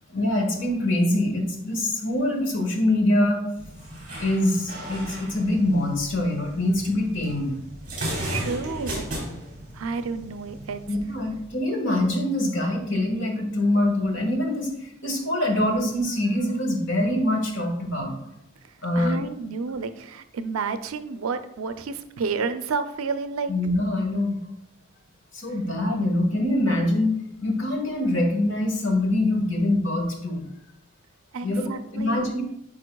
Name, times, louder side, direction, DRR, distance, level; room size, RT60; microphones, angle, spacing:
voice 1, 0.1-3.4 4.2-7.5 10.9-18.1 18.8-19.2 23.5-24.4 25.3-30.5 31.4-32.4, left 1 dB, 60° left, 2 dB, 1.3 m, -24 dB
sound 1, 3.6-11.6, equal, 40° right, 2.4 m, -36 dB
voice 2, 8.3-9.1 9.7-10.8 18.6-23.5 31.3-32.3, right 4 dB, 85° right, 10 dB, 0.5 m, -30 dB
9.1 x 4.6 x 2.3 m, 0.77 s
head